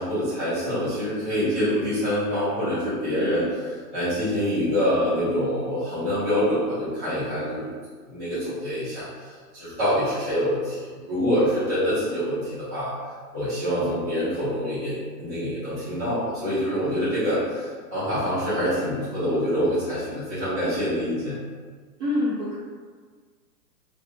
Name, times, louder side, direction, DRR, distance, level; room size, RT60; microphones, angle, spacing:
voice 1, 0.0-7.6 8.1-12.9 13.3-21.3, equal, 15° right, -16 dB, 0.3 m, -26 dB
voice 2, 22.0-22.6, left 1 dB, 45° right, -11 dB, 0.9 m, -25 dB
2.4 x 2.1 x 2.9 m, 1.6 s
hypercardioid pair, 130°, 50 cm